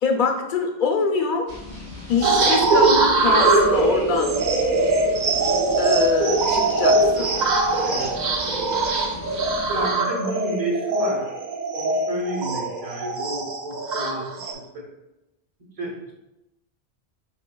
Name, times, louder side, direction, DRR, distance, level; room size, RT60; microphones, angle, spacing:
voice 1, 0.0-1.5 2.1-4.3 5.8-7.3, left 5 dB, 55° left, 3 dB, 0.7 m, -24 dB
sound 1, 1.5-9.9, left 2 dB, 70° right, 1.9 m, -39 dB
sound 2, 2.2-14.5, right 2 dB, 55° right, 0.6 m, -21 dB
voice 2, 7.8-8.2 9.7-11.2 11.7-14.3 14.7-14.9 15.8-16.1, right 1 dB, 35° right, -2 dB, 1.0 m, -30 dB
5.1 x 3.7 x 2.2 m, 0.93 s
omnidirectional pair, 1.0 m